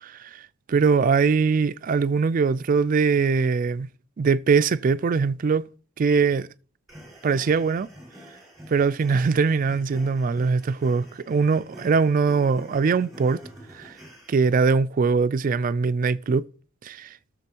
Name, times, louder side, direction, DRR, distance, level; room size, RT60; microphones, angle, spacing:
voice 1, 0.0-0.4 0.7-3.9 4.2-5.6 6.0-6.5 7.2-7.9 8.7-13.4 13.7-13.9 14.3-16.4 16.8-17.1, right 5 dB, 40° right, 0.3 m, -22 dB
sound 1, 6.9-14.5, equal, ahead, 4.9 m, -47 dB
17.5 x 6.8 x 2.9 m
head